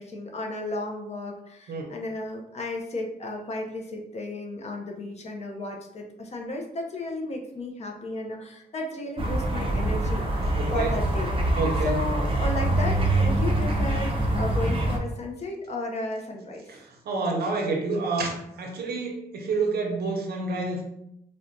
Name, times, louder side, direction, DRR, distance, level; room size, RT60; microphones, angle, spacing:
voice 1, 0.0-11.3 11.8-16.6, left 2 dB, 45° left, 1 dB, 0.5 m, -34 dB
sound 1, 9.2-15.0, right 1 dB, 35° right, 0.5 m, -24 dB
voice 2, 10.6-11.0 11.6-12.0 16.7-20.8, right 3 dB, 85° right, 1 dB, 0.7 m, -28 dB
4.2 x 2.2 x 2.5 m, 0.80 s
wide cardioid pair, 155°, 16 cm